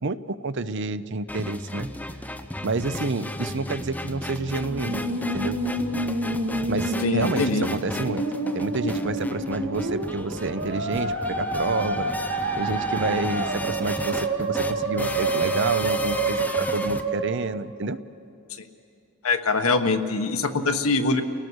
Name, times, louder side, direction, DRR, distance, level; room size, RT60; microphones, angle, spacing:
voice 1, 0.0-1.9 2.6-5.6 6.7-8.3 8.5-18.0, right 3 dB, 60° right, 13 dB, 0.7 m, -29 dB
sound 1, 1.3-17.0, left 1 dB, 10° left, 0.6 m, -34 dB
Musical instrument, 4.6-17.6, right 2 dB, 75° right, 2.1 m, -28 dB
voice 2, 7.0-7.7 19.2-21.2, left 3 dB, 85° left, 7 dB, 1.2 m, -23 dB
29.5 x 18.0 x 6.3 m, 2.6 s
head